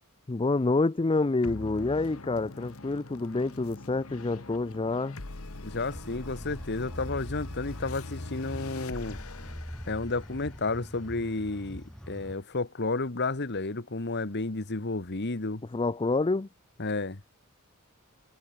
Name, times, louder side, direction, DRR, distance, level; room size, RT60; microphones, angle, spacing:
voice 1, 0.3-5.2 15.7-16.5, left 3 dB, 25° left, 0.5 m, -27 dB
sound 1, 1.4-12.2, left 2 dB, 70° left, 1.7 m, -43 dB
voice 2, 5.6-9.2 9.9-15.6 16.8-17.2, left 3 dB, 50° left, 1.5 m, -32 dB
sound 2, 5.9-12.3, equal, 5° left, 2.1 m, -43 dB
head